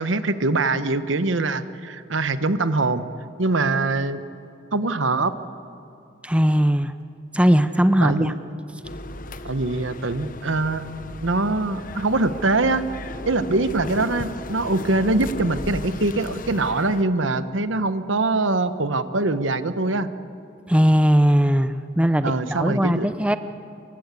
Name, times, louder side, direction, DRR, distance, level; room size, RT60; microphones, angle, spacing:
voice 1, 0.0-3.0 3.4-4.2 4.7-5.3 8.0-8.4 9.4-10.8 11.2-12.8 13.3-20.1 22.2-23.1, right 2 dB, 75° right, 12 dB, 1.2 m, -23 dB
voice 2, 6.2-6.9 7.3-8.3 20.7-23.4, equal, 5° right, 11 dB, 0.7 m, -19 dB
sound 1, 8.8-17.0, left 2 dB, 45° left, 1.0 m, -36 dB
28.0 x 24.0 x 8.4 m, 2.7 s
head